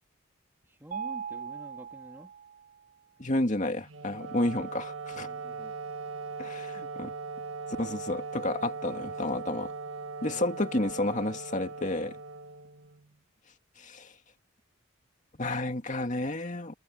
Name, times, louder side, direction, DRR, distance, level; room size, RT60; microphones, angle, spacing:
voice 1, 0.6-2.3 5.1-5.7 10.2-10.4, equal, 10° right, 3.1 m, -48 dB
Mallet percussion, 0.9-2.9, right 7 dB, 45° right, 3.3 m, -39 dB
voice 2, 3.2-5.3 6.4-7.1 7.8-9.7 10.2-12.2 13.8-14.1 15.4-16.7, left 2 dB, 35° left, 2.2 m, -31 dB
Wind instrument woodwind instrument, 3.8-13.1, right 4 dB, 70° right, 1.4 m, -39 dB
open air
head